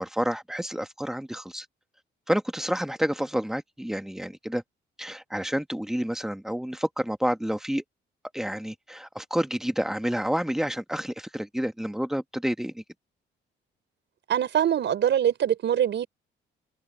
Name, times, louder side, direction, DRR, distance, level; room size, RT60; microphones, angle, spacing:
voice 1, 0.0-1.7 2.3-4.6 5.0-7.8 8.3-12.8, equal, ahead, 1.7 m, -29 dB
voice 2, 14.3-16.1, right 10 dB, 65° right, 5.1 m, -23 dB
cardioid pair, 90°, 20 cm